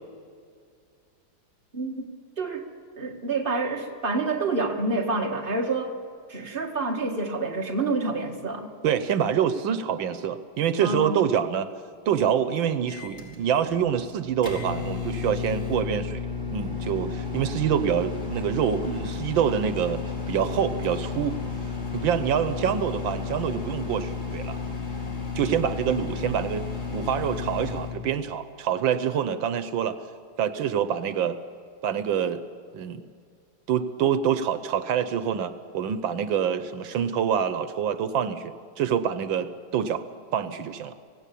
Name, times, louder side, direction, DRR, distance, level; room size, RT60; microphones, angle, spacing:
voice 1, 1.7-2.1 2.4-2.7 3.0-5.9 6.3-8.7 10.8-11.2, right 3 dB, 30° right, 1 dB, 2.2 m, -28 dB
voice 2, 8.8-11.7 12.1-16.2 16.5-20.0 20.3-21.4 21.9-24.6 25.3-26.6 26.9-30.0 30.4-31.4 31.8-32.4 32.7-33.0 33.7-40.0 40.3-40.9, right 8 dB, 80° right, 11 dB, 1.6 m, -26 dB
Microwave oven, 12.9-28.0, left 4 dB, 40° left, 4.5 m, -32 dB
26.5 x 17.5 x 8.4 m, 2.2 s
omnidirectional pair, 2.1 m